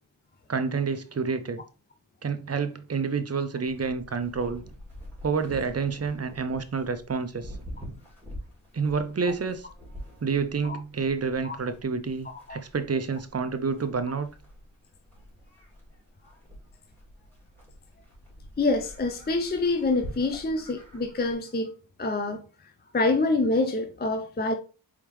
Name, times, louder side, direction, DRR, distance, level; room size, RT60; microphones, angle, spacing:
voice 1, 0.5-1.6 2.2-4.6 5.2-7.5 8.7-9.7 10.2-14.3, right 5 dB, 30° right, 0.6 m, -29 dB
Livestock farm animals working animals, 3.7-21.3, equal, 5° left, 2.4 m, -46 dB
voice 2, 18.6-22.4 22.9-24.5, left 2 dB, 20° left, 0.5 m, -26 dB
4.5 x 3.6 x 3.0 m
wide cardioid pair, 60°, 47 cm